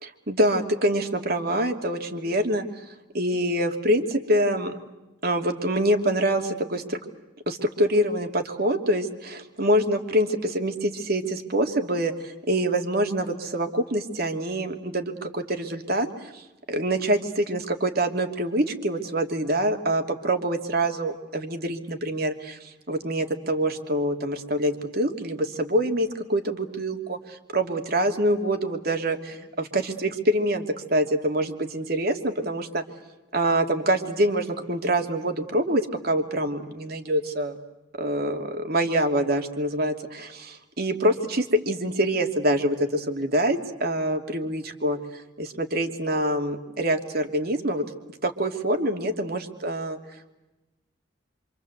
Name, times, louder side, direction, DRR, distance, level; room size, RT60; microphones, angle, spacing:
voice 1, 0.0-2.6 3.1-4.7 5.2-7.0 7.5-16.1 16.3-16.4 16.7-30.6 30.9-32.8 33.3-37.6 38.0-45.0 45.4-47.8 48.2-50.0, right 1 dB, 55° right, 5 dB, 2.9 m, -25 dB
27.5 x 26.5 x 8.1 m, 1.0 s
head